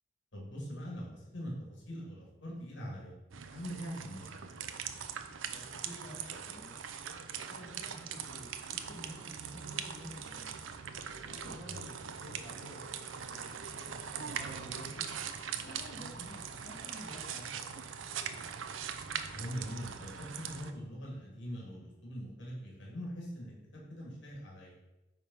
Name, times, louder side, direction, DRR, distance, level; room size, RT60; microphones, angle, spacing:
voice 1, 0.3-1.5 1.8-3.1 3.5-4.4 11.7-11.8 19.3-24.8, equal, 70° left, -4 dB, 2.8 m, -42 dB
sound 1, 3.3-20.7, right 7 dB, 85° right, 0.6 m, -41 dB
voice 2, 5.5-6.7 7.3-10.6 11.0-17.8, equal, 30° left, -6 dB, 1.8 m, -51 dB
9.0 x 3.7 x 5.6 m, 1.0 s
head